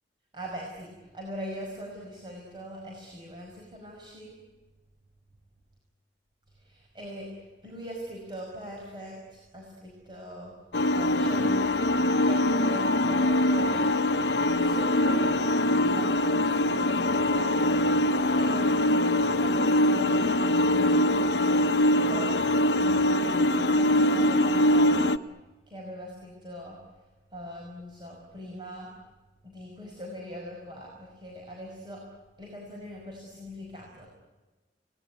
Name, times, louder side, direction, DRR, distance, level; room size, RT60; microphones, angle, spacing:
voice 1, 0.3-4.3 6.6-10.5 10.9-11.7 12.3-13.9 14.4-17.5 18.4-21.8 22.1-22.4 22.7-25.1 25.7-26.8 27.3-28.9 29.4-32.0 32.4-34.1, equal, 25° right, -2 dB, 5.5 m, -41 dB
sound 1, 10.7-25.2, left 1 dB, 65° left, 1.0 m, -23 dB
30.0 x 19.0 x 9.6 m, 1.2 s
head